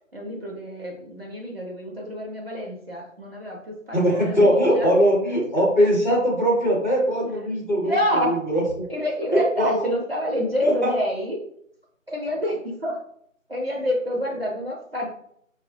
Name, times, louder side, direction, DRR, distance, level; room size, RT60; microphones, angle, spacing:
voice 1, 0.1-4.9 7.8-8.4 8.9-11.4 12.1-13.0 13.5-15.1, equal, 50° right, -2 dB, 0.6 m, -28 dB
voice 2, 3.9-8.0 8.3-8.6 9.3-9.9 10.6-10.9, equal, 35° left, -6 dB, 0.8 m, -20 dB
3.0 x 2.0 x 2.7 m, 0.67 s
figure-of-eight pair, 160°, 40 cm